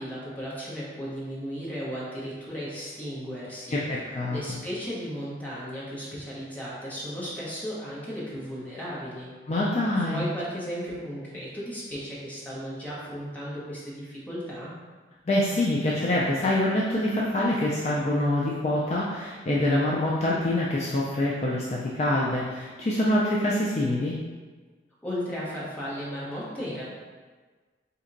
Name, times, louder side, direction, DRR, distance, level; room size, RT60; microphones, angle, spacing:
voice 1, 0.0-3.8 4.3-9.3 9.9-14.7 25.0-26.8, equal, 10° left, -8 dB, 0.9 m, -35 dB
voice 2, 3.7-4.4 9.5-10.2 15.3-24.2, left 1 dB, 35° left, -5 dB, 0.4 m, -25 dB
4.2 x 2.8 x 2.5 m, 1.4 s
head